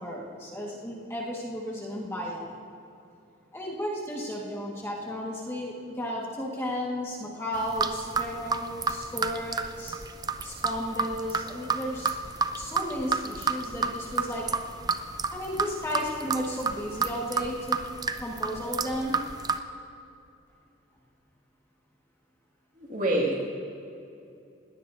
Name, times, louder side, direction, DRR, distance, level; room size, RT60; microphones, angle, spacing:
voice 1, 0.0-2.5 3.5-10.0 10.4-12.1 12.5-14.5 15.3-17.8 18.2-19.2, equal, 15° left, -3 dB, 1.7 m, -34 dB
Dripping Very Fast A, 7.5-19.6, right 4 dB, 20° right, 0.4 m, -30 dB
voice 2, 22.8-23.5, right 1 dB, 40° right, -2 dB, 2.3 m, -26 dB
20.5 x 18.0 x 2.7 m, 2.6 s
head